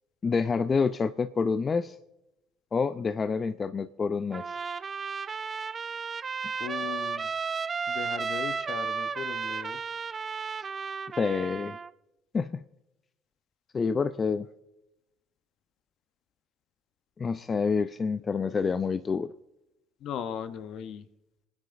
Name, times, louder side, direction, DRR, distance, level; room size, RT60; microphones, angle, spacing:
voice 1, 0.2-2.0 2.7-4.6 11.2-11.8 12.3-12.6 13.7-14.5 17.2-19.3, left 5 dB, 35° left, 12 dB, 0.5 m, -28 dB
Trumpet, 4.3-11.9, right 5 dB, 35° right, 0.4 m, -33 dB
voice 2, 6.6-7.3 7.9-9.8 20.0-21.1, left 8 dB, 60° left, 11 dB, 0.8 m, -37 dB
27.0 x 9.7 x 2.6 m, 0.92 s
hypercardioid pair, 65°, 0 cm